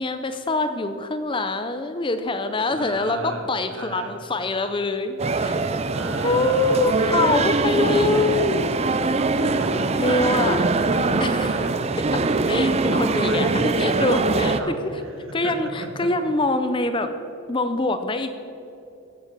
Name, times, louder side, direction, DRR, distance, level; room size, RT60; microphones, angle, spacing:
voice 1, 0.0-5.6 6.2-8.6 9.9-10.7 11.2-11.6 12.1-14.7 15.3-17.1 17.5-18.3, left 2 dB, 20° left, 9 dB, 0.5 m, -24 dB
voice 2, 2.7-4.2 5.9-7.4 9.2-11.9 12.5-13.6 14.4-16.1, right 1 dB, 55° right, 4 dB, 1.5 m, -35 dB
sound 1, 5.2-14.6, right 3 dB, 30° right, 0.4 m, -22 dB
15.5 x 7.4 x 6.8 m, 2.7 s
head